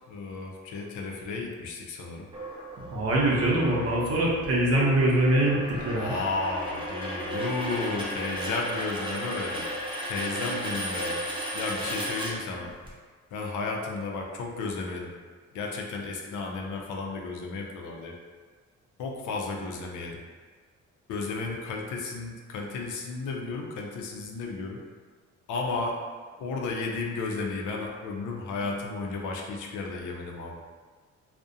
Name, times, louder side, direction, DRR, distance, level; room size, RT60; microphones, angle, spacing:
voice 1, 0.1-2.2 6.0-9.7 10.1-11.2 11.5-12.7 13.3-15.1 15.5-18.2 19.0-20.2 21.1-24.8 25.5-26.0 26.4-30.6, left 3 dB, 80° left, 0 dB, 0.5 m, -33 dB
sound 1, 2.3-12.9, equal, 15° right, 0.6 m, -35 dB
voice 2, 2.9-6.2, right 1 dB, 50° right, -3 dB, 0.7 m, -23 dB
2.4 x 2.1 x 2.6 m, 1.5 s
cardioid pair, 90°, 30 cm